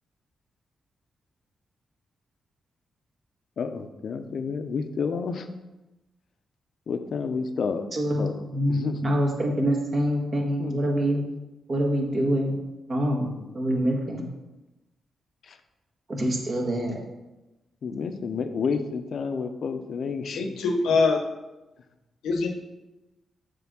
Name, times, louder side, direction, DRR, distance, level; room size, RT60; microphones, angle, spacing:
voice 1, 3.6-5.5 6.9-7.9 8.2-9.1 10.6-10.8 13.1-13.6 15.4-15.6 17.8-21.0, left 5 dB, 70° left, 8 dB, 0.6 m, -31 dB
voice 2, 7.9-11.2 11.7-12.6 12.9-13.3 13.5-14.3 16.1-17.0, equal, 50° right, 0 dB, 1.8 m, -25 dB
voice 3, 20.3-21.2 22.2-22.5, left 4 dB, 90° left, 3 dB, 0.9 m, -23 dB
7.3 x 3.3 x 6.1 m, 1.0 s
cardioid pair, 60°, 0 cm